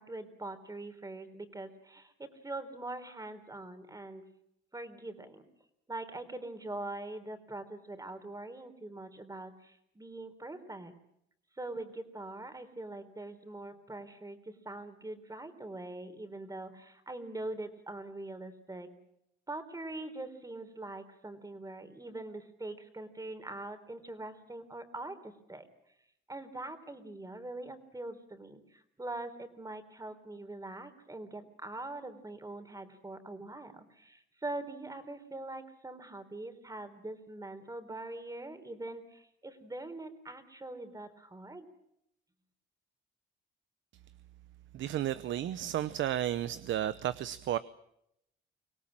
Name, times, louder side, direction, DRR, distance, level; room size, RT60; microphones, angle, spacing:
voice 1, 0.0-4.3 4.7-5.5 5.9-10.9 11.6-18.9 19.5-25.7 26.3-41.7, right 2 dB, 15° right, 10 dB, 3.7 m, -43 dB
voice 2, 44.7-47.6, right 12 dB, 75° right, 15 dB, 0.9 m, -33 dB
25.0 x 18.0 x 8.8 m, 0.78 s
cardioid pair, 90°, 20 cm